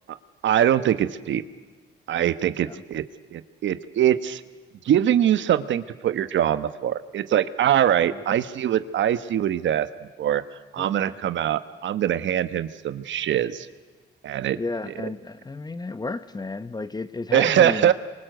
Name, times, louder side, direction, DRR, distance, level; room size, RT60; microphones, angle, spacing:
voice 1, 0.4-1.4 2.1-3.1 3.3-4.4 4.8-9.9 10.2-10.4 10.7-13.7 14.2-14.6 17.3-17.9, right 10 dB, 70° right, 1.2 m, -22 dB
voice 2, 10.8-11.2 14.6-17.9, left 3 dB, 20° left, 1.1 m, -33 dB
26.5 x 24.0 x 7.9 m
cardioid pair, 90°, 20 cm